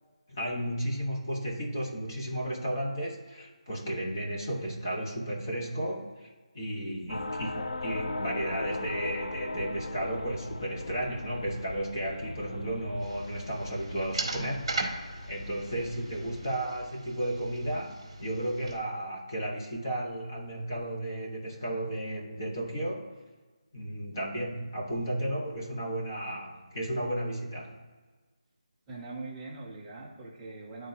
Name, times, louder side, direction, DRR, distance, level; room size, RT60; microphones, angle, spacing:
voice 1, 0.3-6.3 6.5-14.6 15.3-23.2 23.7-27.8, right 1 dB, 25° left, -2 dB, 1.1 m, -33 dB
voice 2, 7.0-7.7 28.9-30.9, right 3 dB, 5° right, -4 dB, 0.3 m, -43 dB
sound 1, 7.1-16.5, left 2 dB, 70° left, 0.4 m, -39 dB
sound 2, 13.0-18.8, right 2 dB, 40° right, 1.5 m, -39 dB
10.5 x 3.6 x 2.7 m, 1.4 s
figure-of-eight pair, 180°, 4 cm